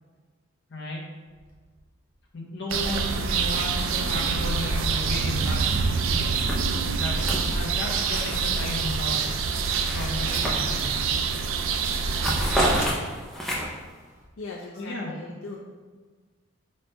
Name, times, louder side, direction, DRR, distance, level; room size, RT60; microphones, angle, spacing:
voice 1, 0.7-1.0 2.3-5.7 6.9-9.5 9.9-11.1 13.5-13.6 14.8-15.1 15.5-15.6, left 1 dB, 60° left, -3 dB, 0.9 m, -34 dB
Engine starting, 1.3-1.5 1.8-1.9 2.1-2.3 3.2-14.2, equal, 40° right, 1.1 m, -49 dB
sound 1, 2.7-12.9, right 5 dB, 70° right, 0.4 m, -26 dB
sound 2, 6.3-8.8 9.2-11.1 11.5-11.7 12.0-13.9, equal, ahead, 0.5 m, -30 dB
voice 2, 14.4-15.6, left 3 dB, 80° left, -2 dB, 0.4 m, -39 dB
5.0 x 4.3 x 2.2 m, 1.4 s
head